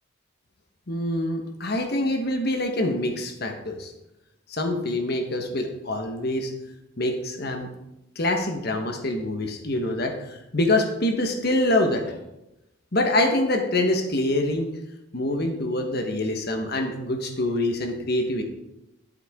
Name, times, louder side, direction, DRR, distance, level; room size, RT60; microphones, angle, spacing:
voice 1, 0.9-3.9 4.5-6.5 7.0-7.7 8.2-12.1 12.9-14.7 15.1-18.4, left 1 dB, 50° left, 4 dB, 1.3 m, -25 dB
11.5 x 8.0 x 3.7 m, 0.90 s
head